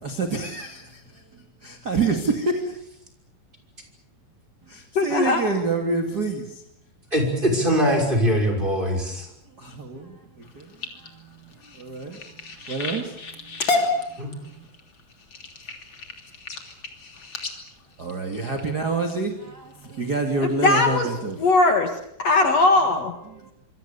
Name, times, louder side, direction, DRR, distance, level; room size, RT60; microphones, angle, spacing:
voice 1, 0.0-2.8 4.6-6.6 9.5-14.7 18.0-21.5 23.2-23.5, right 3 dB, 30° right, 2.4 m, -29 dB
voice 2, 5.0-5.4 20.6-21.1 21.4-21.9 22.2-23.1, left 3 dB, 50° left, 2.5 m, -19 dB
voice 3, 7.1-9.3 14.2-14.3, equal, 15° right, 5.9 m, -22 dB
sound 1, 10.4-19.1 19.7-20.1 20.5-20.9 21.3-21.4 21.7-21.8, left 3 dB, 35° left, 3.5 m, -31 dB
26.0 x 25.0 x 7.0 m
omnidirectional pair, 4.2 m